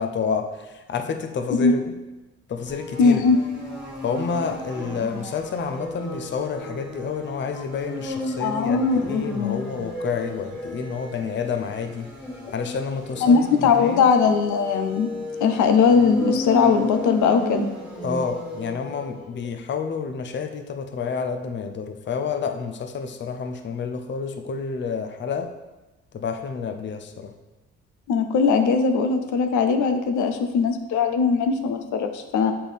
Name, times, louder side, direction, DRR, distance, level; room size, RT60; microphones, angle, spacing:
voice 1, 0.0-1.9 2.5-3.2 4.0-12.1 12.5-14.0 18.0-25.5 26.1-27.3, left 5 dB, 40° left, 6 dB, 0.6 m, -29 dB
sound 1, 2.7-19.3, left 1 dB, 5° right, 1.9 m, -33 dB
voice 2, 3.0-3.4 8.4-9.6 13.2-15.1 15.4-17.7 28.1-32.5, left 5 dB, 80° left, 6 dB, 0.7 m, -20 dB
7.5 x 4.3 x 3.5 m, 1.1 s
cardioid pair, 90°, 30 cm